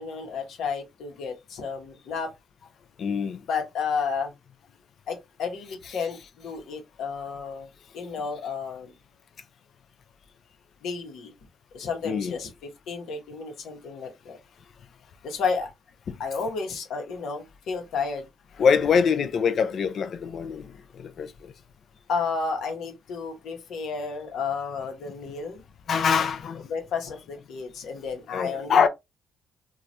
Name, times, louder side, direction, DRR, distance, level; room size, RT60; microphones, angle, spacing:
voice 1, 0.0-2.3 3.5-4.3 5.1-7.7 7.9-8.9 10.8-11.3 11.7-14.4 15.2-15.7 16.2-18.3 22.1-25.6 26.2-26.3 26.7-28.9, left 5 dB, 75° left, 1.0 m, -32 dB
voice 2, 3.0-3.4 12.0-12.4 18.6-20.7 20.9-21.5 25.9-26.7 28.3-28.9, left 6 dB, 60° left, 0.5 m, -24 dB
3.0 x 2.3 x 2.6 m
cardioid pair, 75°, 0 cm